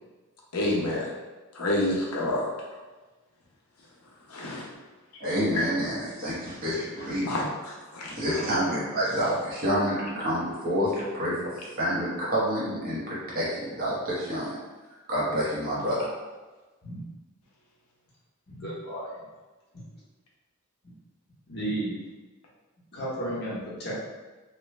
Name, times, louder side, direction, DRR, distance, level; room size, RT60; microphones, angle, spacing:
voice 1, 0.5-1.1 1.5-2.5 4.3-4.7 5.5-5.6 7.2-8.5, left 1 dB, 80° left, -4 dB, 0.7 m, -29 dB
voice 2, 5.2-7.3 8.1-14.6 15.1-16.1, equal, 40° right, -7 dB, 1.0 m, -28 dB
voice 3, 18.5-19.2 21.5-21.9 22.9-23.9, right 1 dB, 45° left, -7 dB, 1.1 m, -33 dB
3.1 x 2.3 x 3.1 m, 1.2 s
head